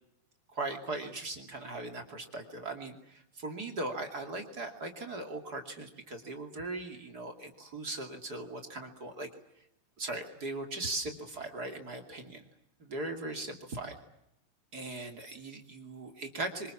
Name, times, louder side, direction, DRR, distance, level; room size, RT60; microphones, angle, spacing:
voice 1, 0.5-9.3 10.0-12.4 12.8-14.0 14.7-16.7, right 2 dB, 30° right, 4 dB, 2.3 m, -39 dB
27.0 x 25.5 x 7.3 m, 0.80 s
omnidirectional pair, 4.8 m